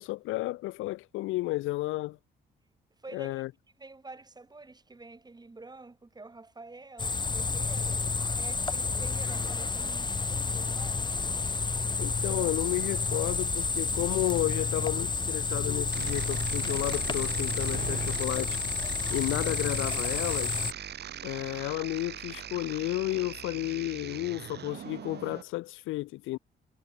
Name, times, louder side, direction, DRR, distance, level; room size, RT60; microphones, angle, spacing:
voice 1, 0.0-2.2 3.1-3.5 12.0-18.6 19.1-20.6 21.2-26.4, left 18 dB, 85° left, 0.5 m, -32 dB
voice 2, 3.0-3.4 3.8-11.1, right 3 dB, 20° right, 4.3 m, -48 dB
sound 1, 7.0-20.7, left 4 dB, 20° left, 1.0 m, -30 dB
sound 2, 15.9-25.4, right 9 dB, 55° right, 1.3 m, -40 dB
cardioid pair, 90°, 20 cm